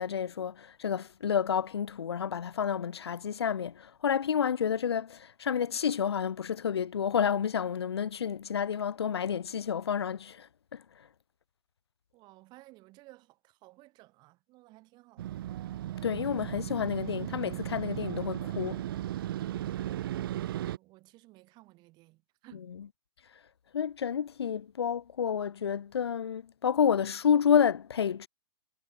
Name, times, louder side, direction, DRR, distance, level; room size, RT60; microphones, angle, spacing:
voice 1, 0.0-10.8 16.0-18.8 23.7-28.3, left 7 dB, 85° left, 0.8 m, -30 dB
voice 2, 12.1-15.4 20.2-22.7, right 20 dB, 35° right, 3.3 m, -57 dB
Motorcycle, 15.2-20.8, right 13 dB, 60° right, 0.4 m, -36 dB
hypercardioid pair, 125°, 13 cm